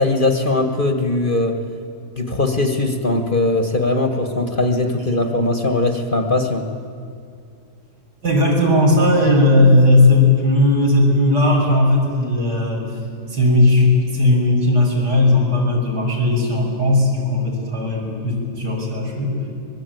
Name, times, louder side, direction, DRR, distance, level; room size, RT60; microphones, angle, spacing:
voice 1, 0.0-1.6 2.2-6.7, left 2 dB, 30° left, 5 dB, 1.5 m, -20 dB
voice 2, 8.2-12.8 13.3-19.3, left 2 dB, 80° right, -2 dB, 6.4 m, -16 dB
25.0 x 21.5 x 9.3 m, 2.4 s
omnidirectional pair, 1.8 m